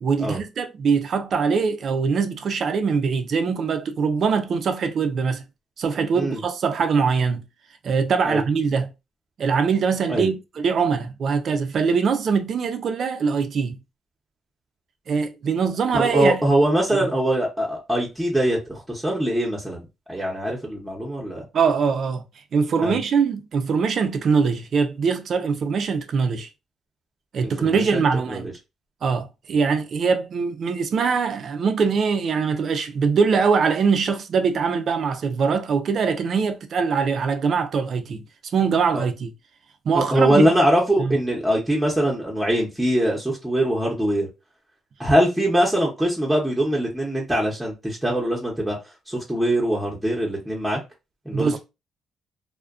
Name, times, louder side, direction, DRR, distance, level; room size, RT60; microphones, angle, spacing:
voice 1, 0.0-5.4 5.8-7.4 7.8-8.9 9.4-13.8 15.1-16.4 16.9-17.1 21.5-22.2 22.5-26.5 27.3-28.5 29.0-38.2 38.5-39.3 39.9-40.5 41.0-41.2 51.3-51.6, right 5 dB, 55° right, 0.4 m, -22 dB
voice 2, 15.9-19.8 20.1-21.4 22.8-23.0 27.4-28.4 39.9-44.3 45.0-48.8 49.1-50.8 51.3-51.6, right 1 dB, 5° right, 0.8 m, -22 dB
2.4 x 2.1 x 2.4 m
cardioid pair, 90°, 0 cm